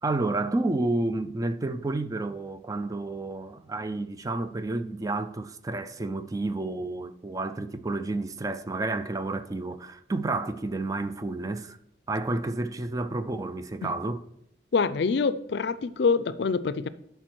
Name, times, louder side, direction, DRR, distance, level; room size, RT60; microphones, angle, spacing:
voice 1, 0.0-11.8 12.1-14.2, right 2 dB, 20° right, 0.4 m, -30 dB
voice 2, 14.7-16.9, left 5 dB, 70° left, 0.4 m, -25 dB
11.5 x 4.6 x 4.5 m
head